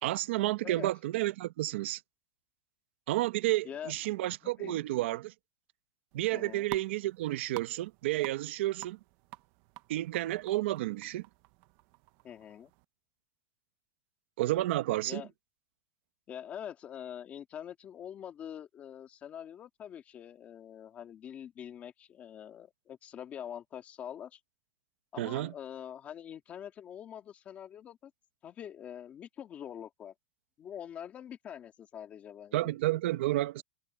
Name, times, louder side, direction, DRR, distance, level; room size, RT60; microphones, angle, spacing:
voice 1, 0.0-2.0 3.1-5.3 6.1-9.0 9.9-11.3 14.4-15.2 25.2-25.5 32.5-33.6, right 16 dB, 50° right, 1.1 m, -31 dB
voice 2, 4.4-4.8 6.3-6.7 12.2-12.7 15.1-15.3 16.3-24.4 25.1-28.1 28.4-30.1 30.6-32.8, left 9 dB, 15° left, 2.1 m, -45 dB
sound 1, 6.1-12.8, right 20 dB, 30° right, 0.7 m, -49 dB
supercardioid pair, 175°, 8 cm